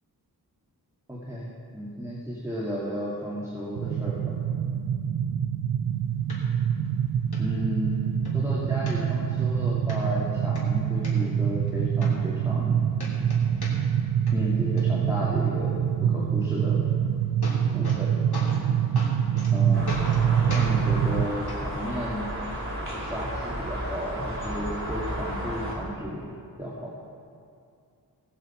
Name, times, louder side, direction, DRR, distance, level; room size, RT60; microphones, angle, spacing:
voice 1, 1.1-1.5 1.7-4.3 7.4-8.0 8.3-12.8 14.3-16.8 17.7-18.1 19.5-19.9 20.5-22.3 22.9-26.3 26.6-26.9, equal, 10° right, -7 dB, 2.2 m, -33 dB
sound 1, 3.8-21.3, right 8 dB, 85° right, 0.5 m, -25 dB
sound 2, 6.3-6.4 6.9-7.0 7.3-7.4 7.9-8.3 8.9-9.4 9.9-10.0 10.4-11.1 11.7-11.8 12.0-12.7 13.0-14.0 14.3-14.8 16.9-17.0 17.2-18.0 18.3-18.7 19.0-19.5 19.9-20.2 20.5-20.7 21.5-21.6 22.5-22.6, left 2 dB, 80° left, 3.1 m, -38 dB
sound 3, 19.7-25.8, right 1 dB, 35° right, 3.4 m, -33 dB
19.0 x 8.0 x 4.4 m, 2.4 s
wide cardioid pair, 85°, 38 cm